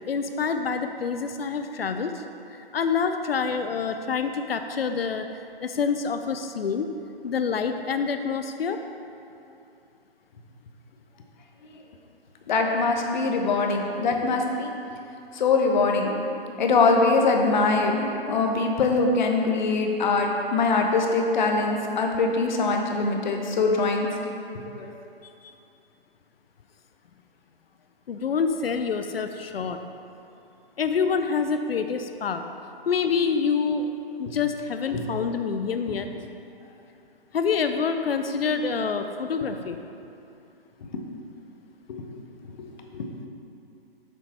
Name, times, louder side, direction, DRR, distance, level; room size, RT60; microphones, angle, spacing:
voice 1, 0.1-2.2 2.7-5.3 5.6-6.9 7.2-8.8 28.1-29.8 30.8-32.4 32.9-33.9 34.2-36.1 37.3-39.8, left 5 dB, 75° left, 7 dB, 0.6 m, -26 dB
voice 2, 12.5-14.7 15.3-16.1 16.6-24.1 24.7-24.9 34.9-35.0 40.9-41.0 41.9-42.0 42.4-42.7 42.9-43.1, left 3 dB, 50° left, 2 dB, 1.0 m, -23 dB
6.9 x 6.9 x 4.2 m, 2.7 s
hypercardioid pair, 140°, 30 cm